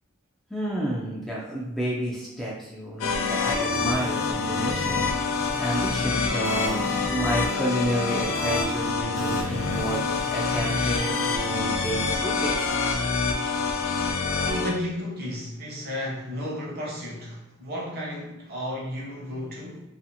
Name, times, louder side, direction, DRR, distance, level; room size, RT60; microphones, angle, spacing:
voice 1, 0.5-5.0 5.6-12.8, equal, ahead, -5 dB, 0.3 m, -30 dB
sound 1, 3.0-14.7, left 4 dB, 75° left, 0.4 m, -26 dB
sound 2, 3.5-11.6, right 3 dB, 70° right, 0.4 m, -39 dB
voice 2, 14.4-19.8, left 1 dB, 50° right, -3 dB, 0.8 m, -33 dB
2.6 x 2.4 x 2.6 m, 0.94 s
head